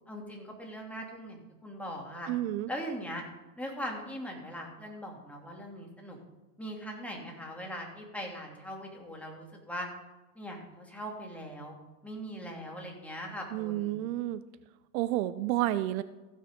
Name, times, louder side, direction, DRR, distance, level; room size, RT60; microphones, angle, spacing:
voice 1, 0.1-2.3 2.7-3.2 3.6-6.2 6.6-9.9 10.3-11.8 12.0-14.0, equal, 5° left, -1 dB, 2.9 m, -40 dB
voice 2, 2.3-2.7 13.5-14.4 14.9-16.0, right 15 dB, 70° right, 14 dB, 0.7 m, -30 dB
15.0 x 6.4 x 5.2 m, 1.1 s
hypercardioid pair, 100°, 45 cm